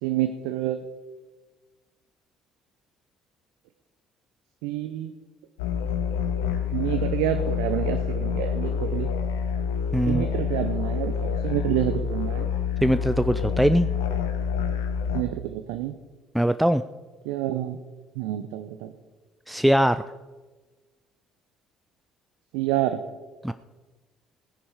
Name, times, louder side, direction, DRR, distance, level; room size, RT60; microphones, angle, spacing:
voice 1, 0.0-0.8 4.6-5.1 6.7-9.1 10.1-12.5 15.1-16.0 17.2-17.8 18.2-18.9 22.5-23.0, right 13 dB, 70° right, 8 dB, 0.7 m, -28 dB
sound 1, 5.6-15.2, left 7 dB, 75° left, 1.1 m, -27 dB
voice 2, 9.9-10.2 12.8-13.9 16.3-16.8 19.5-20.0 23.4-23.5, right 1 dB, 5° right, 11 dB, 0.5 m, -21 dB
17.0 x 9.9 x 4.9 m, 1.3 s
hypercardioid pair, 55°, 0 cm